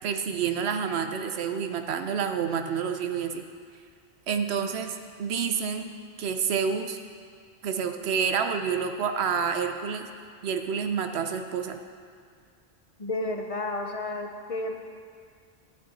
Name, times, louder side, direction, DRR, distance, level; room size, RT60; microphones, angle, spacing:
voice 1, 0.0-3.4 4.3-5.9 6.2-7.0 7.6-10.1 10.4-11.8, right 6 dB, 85° right, 7 dB, 1.0 m, -28 dB
voice 2, 13.0-14.7, left 2 dB, 40° left, 3 dB, 0.6 m, -31 dB
11.0 x 8.8 x 4.2 m, 2.1 s
omnidirectional pair, 1.1 m